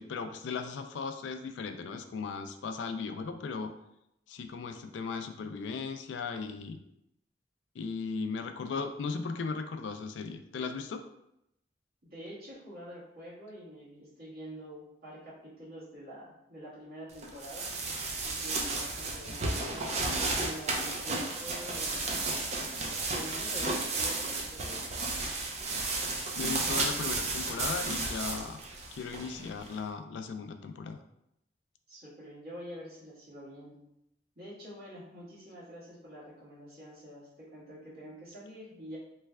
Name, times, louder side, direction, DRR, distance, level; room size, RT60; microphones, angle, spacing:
voice 1, 0.0-3.7 4.3-6.8 7.8-11.0 19.3-19.4 26.4-28.6 28.9-31.0, left 5 dB, 75° left, 8 dB, 0.3 m, -37 dB
voice 2, 12.0-17.7 18.2-22.2 23.0-24.9 31.9-33.8 34.3-39.0, equal, 55° right, -9 dB, 1.5 m, -46 dB
sound 1, 17.2-29.7, right 3 dB, 35° right, 0.4 m, -33 dB
3.1 x 2.2 x 3.4 m, 0.82 s
head